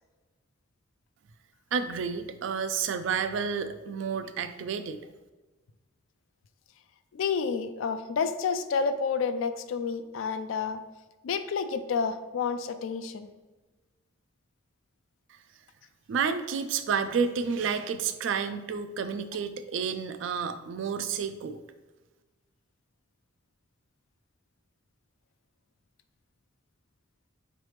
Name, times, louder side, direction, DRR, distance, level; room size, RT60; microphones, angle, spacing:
voice 1, 1.7-5.0 16.1-21.6, right 6 dB, 75° right, 10 dB, 0.3 m, -30 dB
voice 2, 7.1-10.8 11.2-13.3, left 5 dB, 85° left, 10 dB, 0.3 m, -29 dB
4.1 x 3.2 x 3.2 m, 1.2 s
head